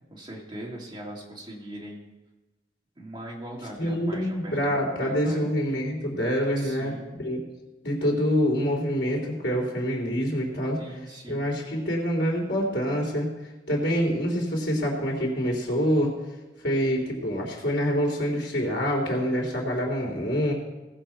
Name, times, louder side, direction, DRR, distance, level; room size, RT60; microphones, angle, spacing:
voice 1, 0.1-2.1 3.0-4.8 5.0-5.5 6.6-7.2 10.8-11.6, right 1 dB, 25° right, -3 dB, 2.7 m, -40 dB
voice 2, 3.8-7.4 7.8-10.8 11.3-13.3 13.7-16.1 16.6-20.5, equal, 75° left, -1 dB, 3.4 m, -26 dB
18.5 x 7.5 x 4.5 m, 1.1 s
head